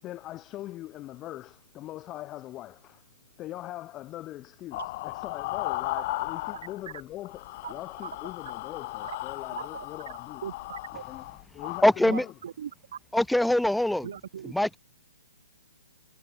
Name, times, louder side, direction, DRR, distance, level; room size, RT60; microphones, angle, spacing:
voice 1, 0.0-3.1 3.4-10.4 11.0-12.3, left 15 dB, 20° left, 4.4 m, -41 dB
sound 1, 4.7-7.0 7.2-11.8, left 19 dB, 35° left, 3.7 m, -36 dB
voice 2, 10.4-11.0 12.0-13.0 14.0-14.8, right 8 dB, 60° right, 3.2 m, -39 dB
voice 3, 11.8-12.2 13.1-14.1 14.4-14.8, left 1 dB, ahead, 2.0 m, -23 dB
hypercardioid pair, 155°, 0 cm